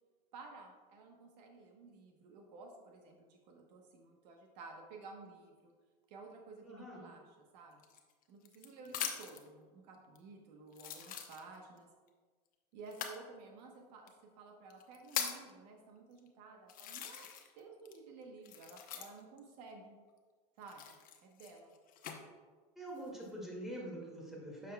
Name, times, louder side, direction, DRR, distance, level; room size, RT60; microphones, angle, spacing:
voice 1, 0.3-5.7 6.1-7.9 8.3-11.9 12.7-17.3 17.6-20.0 20.6-21.7, right 3 dB, 75° right, 2 dB, 1.1 m, -53 dB
voice 2, 6.6-7.0 22.8-24.7, right 1 dB, ahead, -4 dB, 2.1 m, -45 dB
sound 1, 7.8-9.5 10.2-10.3 10.7-11.8 12.9-13.2 14.1-14.2 14.7-15.5 16.2-16.3 16.7-17.6 17.9-19.4 20.6-22.2 22.8-23.3, left 8 dB, 40° left, 0.9 m, -42 dB
9.0 x 6.3 x 2.3 m, 1.5 s
supercardioid pair, 110°, 21 cm